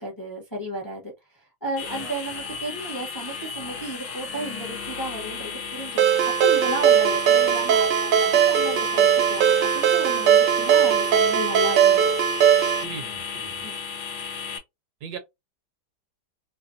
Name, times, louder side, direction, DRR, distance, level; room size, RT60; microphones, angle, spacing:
voice 1, 0.0-12.1 13.6-13.8, right 1 dB, 15° left, 0.7 m, -34 dB
sound 1, 1.8-14.6, left 6 dB, 70° left, 1.3 m, -34 dB
Ringtone, 6.0-12.8, right 9 dB, 90° right, 1.3 m, -19 dB
voice 2, 12.8-13.7 15.0-15.2, right 7 dB, 70° right, 1.2 m, -38 dB
3.3 x 2.2 x 2.6 m
omnidirectional pair, 1.9 m